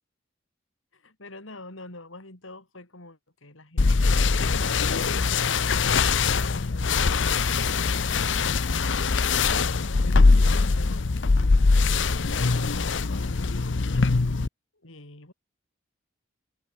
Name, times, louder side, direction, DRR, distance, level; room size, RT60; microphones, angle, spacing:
voice 1, 0.9-14.4 14.7-15.3, left 2 dB, 85° left, 4.2 m, -47 dB
sound 1, 3.8-14.5, left 4 dB, 70° left, 0.8 m, -22 dB
head